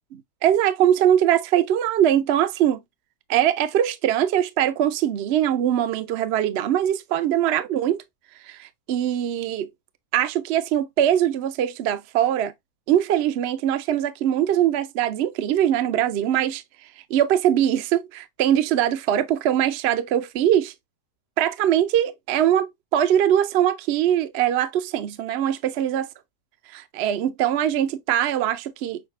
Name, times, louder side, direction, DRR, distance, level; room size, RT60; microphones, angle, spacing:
voice 1, 0.1-2.8 3.3-8.0 8.5-9.7 10.1-12.5 12.9-16.6 17.1-20.7 21.4-26.1 26.7-29.0, right 10 dB, 65° right, 0.6 m, -22 dB
6.4 x 2.2 x 3.1 m
omnidirectional pair, 1.7 m